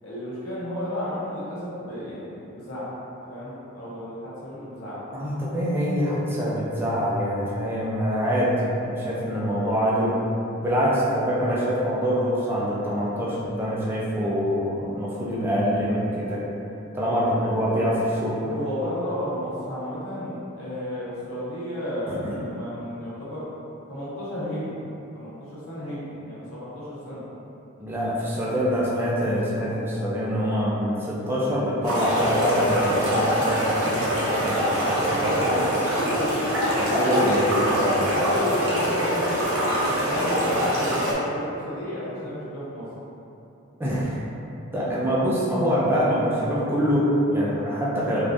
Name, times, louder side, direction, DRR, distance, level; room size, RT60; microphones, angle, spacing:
voice 1, 0.0-2.8 3.3-5.0 18.4-23.5 23.9-24.8 25.1-27.3 28.5-28.6 34.8-35.8 38.1-39.4 39.7-42.9, left 1 dB, 75° left, -9 dB, 1.0 m, -33 dB
voice 2, 5.1-10.2 10.6-16.4 16.9-18.4 22.1-22.4 27.8-35.6 36.7-38.1 43.8-44.2 44.7-48.3, equal, 10° right, -7 dB, 0.4 m, -25 dB
sound 1, 31.8-41.1, equal, 85° right, 0.8 m, -24 dB
3.3 x 2.4 x 2.5 m, 2.9 s
head